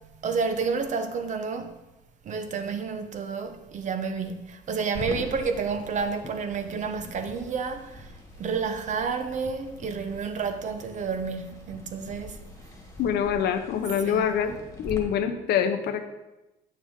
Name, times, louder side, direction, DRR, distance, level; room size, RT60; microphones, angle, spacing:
voice 1, 0.1-1.8 2.2-8.1 8.4-12.4 14.0-14.3, right 5 dB, 45° right, 0.8 m, -30 dB
sound 1, 4.9-15.0, left 2 dB, 15° left, 1.6 m, -43 dB
voice 2, 13.0-14.5 14.8-16.1, left 8 dB, 75° left, 0.8 m, -25 dB
8.6 x 6.6 x 3.7 m
cardioid pair, 110°, 17 cm